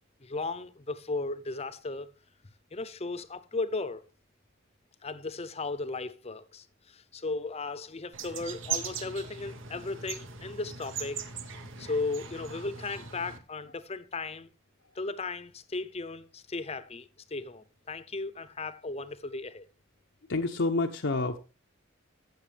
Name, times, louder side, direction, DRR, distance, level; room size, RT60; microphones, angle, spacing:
voice 1, 0.2-2.1 2.7-4.0 5.0-11.2 11.8-14.5 14.9-19.7, left 3 dB, 30° left, 0.7 m, -36 dB
sound 1, 8.1-13.4, right 7 dB, 70° right, 1.2 m, -39 dB
voice 2, 20.3-21.4, left 3 dB, 60° left, 0.7 m, -28 dB
16.0 x 6.7 x 3.3 m
head